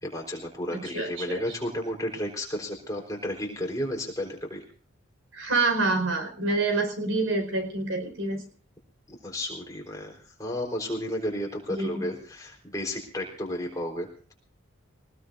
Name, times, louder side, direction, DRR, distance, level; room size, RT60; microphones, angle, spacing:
voice 1, 0.0-4.6 9.1-14.1, left 1 dB, 15° left, 0 dB, 4.1 m, -33 dB
voice 2, 0.7-1.6 5.3-8.4 11.7-12.1, right 3 dB, 75° right, 5 dB, 5.0 m, -27 dB
23.0 x 20.0 x 2.7 m, 0.40 s
head